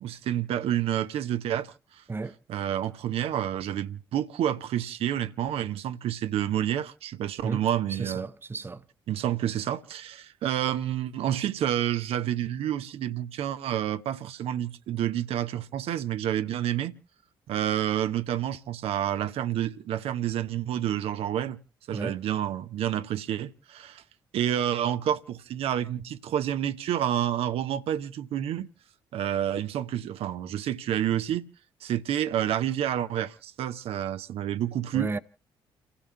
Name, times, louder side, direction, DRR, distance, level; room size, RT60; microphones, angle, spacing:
voice 1, 0.0-2.0 2.5-8.2 9.1-16.9 17.5-21.6 21.9-24.0 24.3-28.7 29.1-31.5 31.8-35.1, right 11 dB, 55° right, 0.7 m, -29 dB
voice 2, 7.4-8.8 21.9-22.2 34.9-35.2, right 3 dB, 20° right, 0.7 m, -33 dB
30.0 x 15.5 x 2.2 m
figure-of-eight pair, 45°, 12 cm